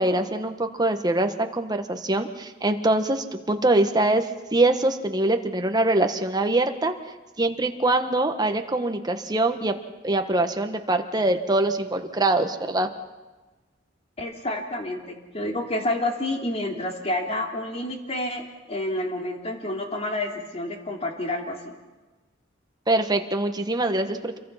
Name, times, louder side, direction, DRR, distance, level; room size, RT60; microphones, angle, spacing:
voice 1, 0.0-6.9 7.4-9.7 10.0-12.9 22.9-24.4, right 2 dB, 20° right, 6 dB, 1.4 m, -23 dB
voice 2, 14.2-21.7, left 1 dB, 35° left, 2 dB, 2.9 m, -29 dB
27.5 x 23.0 x 5.8 m, 1.2 s
head